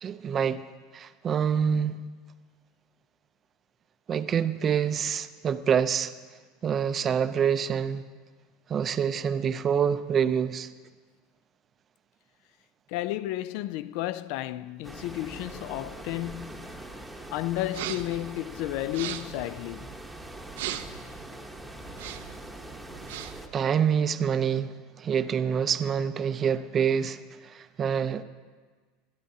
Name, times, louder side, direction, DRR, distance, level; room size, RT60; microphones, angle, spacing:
voice 1, 0.0-0.6 0.9-2.0 4.1-6.1 6.6-8.0 8.7-10.7 23.5-28.2, right 7 dB, 25° right, 0.5 m, -26 dB
voice 2, 12.9-16.9 17.3-19.9, left 15 dB, 60° left, 0.4 m, -32 dB
sound 1, 14.8-23.5, right 1 dB, ahead, 1.0 m, -43 dB
sound 2, 17.7-18.2 18.8-19.4 20.5-21.0 21.9-22.4 22.9-23.5, right 12 dB, 85° right, 0.6 m, -37 dB
21.5 x 13.0 x 2.8 m
supercardioid pair, 145°, 0 cm